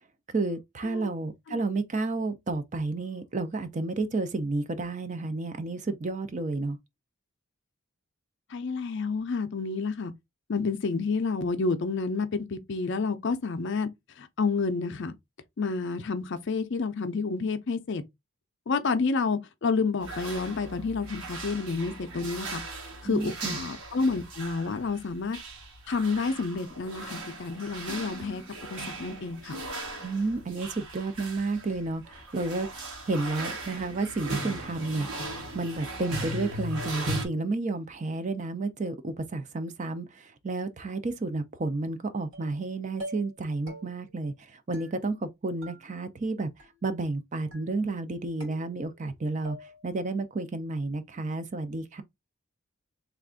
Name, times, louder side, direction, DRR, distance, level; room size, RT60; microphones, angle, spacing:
voice 1, 0.3-6.8 23.0-23.6 30.0-32.7 33.1-35.1 35.5-46.5 46.8-49.6 49.8-52.0, right 3 dB, 35° right, 0.4 m, -31 dB
voice 2, 8.5-10.1 10.5-13.9 14.2-15.1 15.6-18.0 18.7-22.6 23.0-25.4 25.9-28.4 28.7-29.6, left 4 dB, 55° left, 0.5 m, -29 dB
sound 1, 20.0-37.3, right 2 dB, 90° right, 1.2 m, -38 dB
sound 2, 42.3-42.7 43.0-43.4 43.7-44.2 44.7-45.3 45.6-46.3 46.6-47.1 47.5-48.0 48.4-49.1 49.4-50.0, right 1 dB, 60° right, 2.3 m, -46 dB
3.3 x 2.5 x 3.5 m
head